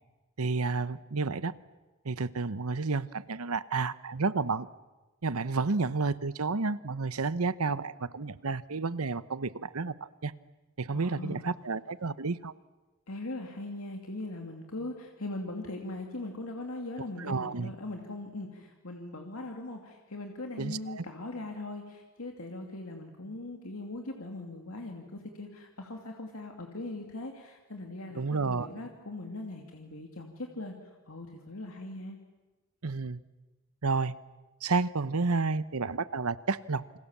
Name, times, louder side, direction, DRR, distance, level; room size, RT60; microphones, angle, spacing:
voice 1, 0.4-1.5 2.0-4.7 5.2-9.9 10.2-10.3 10.8-12.5 17.2-17.7 20.6-21.0 28.2-28.7 32.8-33.2 33.8-34.1 34.6-37.0, right 4 dB, 85° right, 16 dB, 0.9 m, -31 dB
voice 2, 10.9-11.6 13.1-32.2, left 2 dB, 75° left, 2 dB, 2.6 m, -40 dB
28.5 x 26.0 x 7.4 m, 1.2 s
head